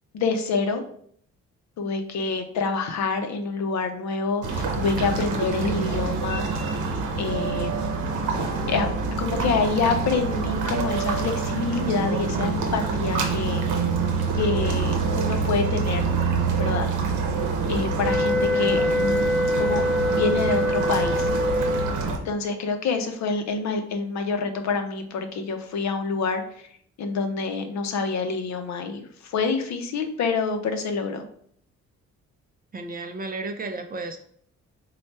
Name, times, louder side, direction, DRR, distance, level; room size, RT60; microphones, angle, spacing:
voice 1, 0.1-0.8 1.8-6.4 7.2-7.7 8.7-8.9 9.2-13.6 14.3-16.1 16.6-16.9 17.7-19.3 19.6-19.8 20.1-21.3 22.2-26.6 27.0-31.2, left 4 dB, 65° left, 6 dB, 0.6 m, -27 dB
sound 1, 4.4-22.2, right 4 dB, 80° right, 0.8 m, -26 dB
sound 2, 6.8-14.2, right 9 dB, 50° right, 0.8 m, -37 dB
sound 3, 18.0-21.9, left 1 dB, 5° left, 0.7 m, -24 dB
voice 2, 32.7-34.2, right 3 dB, 30° right, 6 dB, 0.4 m, -33 dB
3.2 x 2.3 x 4.1 m, 0.62 s
cardioid pair, 90°, 30 cm